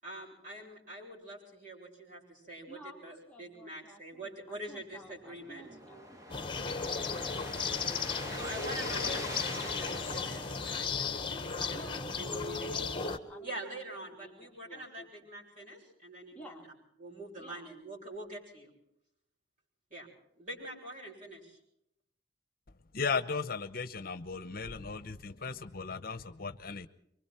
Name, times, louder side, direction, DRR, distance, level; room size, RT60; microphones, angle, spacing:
voice 1, 0.0-6.0 8.2-16.6 17.0-18.7 19.9-20.1 20.4-21.6, right 1 dB, 45° right, -2 dB, 7.8 m, -45 dB
voice 2, 2.7-8.9 11.7-15.3 16.3-16.7 17.4-17.7, equal, 10° left, 0 dB, 2.0 m, -54 dB
sound 1, 4.9-11.5, equal, 20° right, 2.1 m, -44 dB
sound 2, 6.3-13.2, left 5 dB, 30° left, 1.6 m, -35 dB
voice 3, 22.9-26.9, left 5 dB, 55° left, 13 dB, 1.0 m, -36 dB
26.0 x 24.0 x 4.5 m, 0.76 s
head